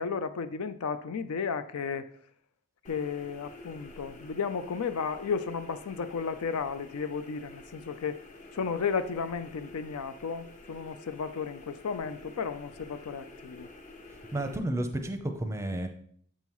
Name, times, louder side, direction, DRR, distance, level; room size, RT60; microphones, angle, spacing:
voice 1, 0.0-2.0 2.9-8.2 8.5-13.7, left 5 dB, 90° left, 11 dB, 0.5 m, -33 dB
sound 1, 2.8-14.6, left 2 dB, 35° left, 0.7 m, -49 dB
voice 2, 14.3-15.9, right 1 dB, 15° right, 6 dB, 0.5 m, -31 dB
7.4 x 5.4 x 3.1 m, 0.62 s
head